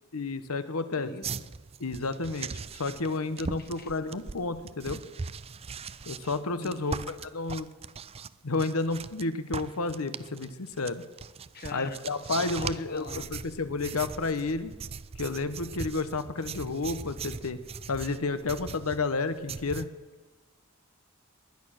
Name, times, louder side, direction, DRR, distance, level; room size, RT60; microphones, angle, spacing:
voice 1, 0.1-1.1 1.8-5.0 6.1-7.7 8.4-11.0 11.7-14.7 15.2-17.6 17.9-19.9, left 3 dB, 85° left, 12 dB, 1.0 m, -31 dB
voice 2, 0.9-1.5 3.4-3.9 6.6-7.1 11.5-13.3, left 3 dB, 45° left, 10 dB, 1.0 m, -43 dB
Pencil writing on paper, 1.2-9.3 9.5-19.9, right 5 dB, 30° right, 0.4 m, -40 dB
20.0 x 11.0 x 6.4 m, 1.3 s
head